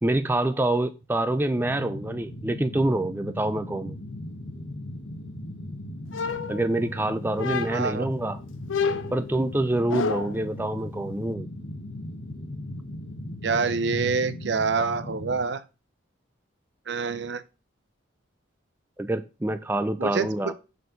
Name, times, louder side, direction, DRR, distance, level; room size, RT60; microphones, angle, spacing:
voice 1, 0.0-3.9 6.5-8.4 9.1-11.5 19.0-20.5, right 1 dB, 10° right, 0.4 m, -26 dB
sound 1, 1.5-15.4, left 1 dB, 70° left, 1.2 m, -38 dB
sound 2, 6.1-7.0 7.4-8.0 8.7-10.4, left 5 dB, 90° left, 0.6 m, -29 dB
voice 2, 7.7-8.1 13.4-15.6 16.9-17.4 20.0-20.5, right 4 dB, 60° right, 0.6 m, -26 dB
6.5 x 4.3 x 5.0 m
head